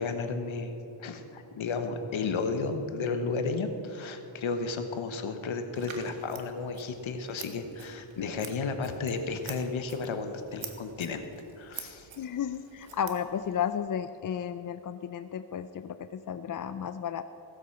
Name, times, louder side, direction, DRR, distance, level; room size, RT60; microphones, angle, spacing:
voice 1, 0.0-11.2 11.6-12.1, left 4 dB, 70° left, 7 dB, 1.1 m, -33 dB
Scissors, 5.7-13.8, right 6 dB, 65° right, 1.4 m, -48 dB
voice 2, 12.2-17.2, left 8 dB, 45° left, 11 dB, 0.4 m, -33 dB
16.5 x 7.9 x 5.9 m, 2.8 s
wide cardioid pair, 110°, 49 cm